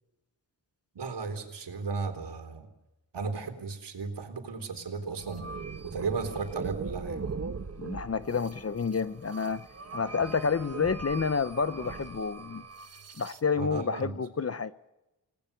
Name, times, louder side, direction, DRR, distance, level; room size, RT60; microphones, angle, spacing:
voice 1, 1.0-2.7 3.1-5.5 5.8-7.2 13.5-14.1, right 4 dB, 70° right, 3.9 m, -35 dB
sound 1, 5.2-13.4, right 4 dB, 35° right, 1.3 m, -40 dB
voice 2, 7.8-9.6 9.9-12.7 13.2-14.7, left 5 dB, 35° left, 0.7 m, -29 dB
30.0 x 19.0 x 6.9 m
wide cardioid pair, 135°, 42 cm